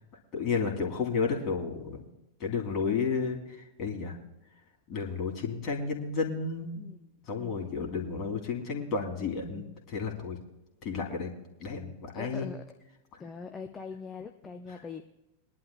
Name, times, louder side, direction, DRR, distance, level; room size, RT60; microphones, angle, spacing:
voice 1, 0.3-2.0 2.4-3.4 3.8-4.2 4.9-6.9 7.3-10.4 10.8-11.3 11.6-12.5, left 5 dB, 35° left, 1 dB, 2.7 m, -32 dB
voice 2, 7.4-8.1 12.1-12.6 13.2-15.1, left 5 dB, 20° left, 4 dB, 0.7 m, -42 dB
22.0 x 11.0 x 2.2 m, 0.95 s
figure-of-eight pair, 90°, 0 cm